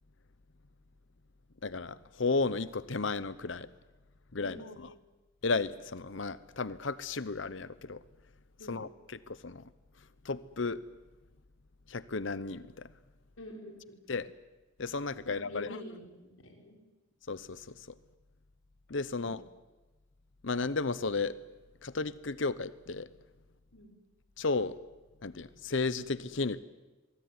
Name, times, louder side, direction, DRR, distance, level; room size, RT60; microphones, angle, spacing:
voice 1, 1.6-3.7 4.3-4.9 5.4-8.0 8.7-9.6 10.2-10.8 11.9-12.9 14.1-14.3 14.8-15.8 17.3-18.0 18.9-19.5 20.4-21.3 21.8-23.1 24.4-24.8 25.2-26.6, left 3 dB, 65° left, 16 dB, 0.9 m, -34 dB
voice 2, 4.4-4.8 8.6-8.8 13.4-14.1 15.2-16.8 23.7-23.9, left 1 dB, 90° left, 2 dB, 6.0 m, -47 dB
24.0 x 22.0 x 9.6 m, 1.2 s
head